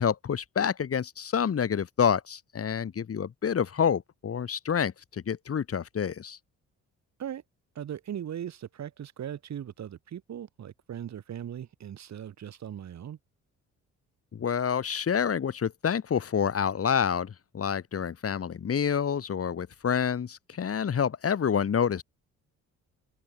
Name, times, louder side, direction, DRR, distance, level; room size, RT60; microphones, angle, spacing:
voice 1, 0.0-6.4 14.3-22.0, left 7 dB, 50° left, 4.9 m, -28 dB
voice 2, 7.7-13.2, right 10 dB, 65° right, 6.1 m, -39 dB
cardioid pair, 90°, 30 cm